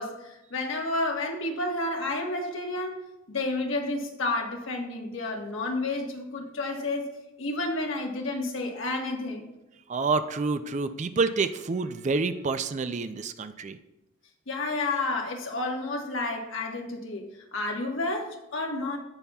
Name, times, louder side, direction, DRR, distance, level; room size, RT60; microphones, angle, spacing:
voice 1, 0.0-3.0 3.3-7.1 7.4-9.5 14.5-17.2 17.5-19.0, left 2 dB, 70° left, 1 dB, 1.3 m, -30 dB
voice 2, 9.9-13.8, right 4 dB, 35° right, 11 dB, 0.4 m, -28 dB
16.5 x 5.6 x 2.3 m, 0.96 s
head